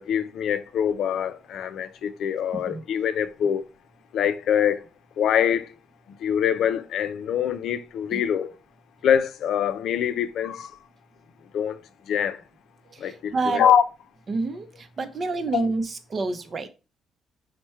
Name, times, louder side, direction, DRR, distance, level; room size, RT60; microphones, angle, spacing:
voice 1, 0.0-3.6 4.1-4.8 5.2-5.7 6.2-8.5 9.0-10.7 11.5-11.8 12.1-12.4 13.0-13.8 15.5-15.7, left 9 dB, 70° left, 0.4 m, -24 dB
voice 2, 12.9-13.6 14.3-16.7, right 3 dB, 40° right, 0.6 m, -28 dB
4.4 x 2.2 x 4.3 m
cardioid pair, 90°, 0 cm